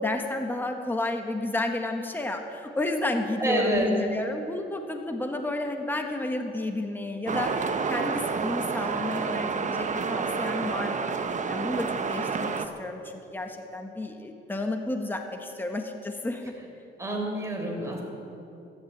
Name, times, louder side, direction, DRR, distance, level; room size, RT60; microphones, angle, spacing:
voice 1, 0.0-11.1 11.5-13.0 13.3-16.5, left 2 dB, 10° left, 4 dB, 1.4 m, -31 dB
voice 2, 3.4-3.9 17.0-18.0, right 1 dB, 15° right, 0 dB, 4.7 m, -27 dB
sound 1, 7.3-12.7, right 5 dB, 40° right, 1.0 m, -29 dB
14.0 x 11.5 x 8.7 m, 2.8 s
cardioid pair, 90°, 20 cm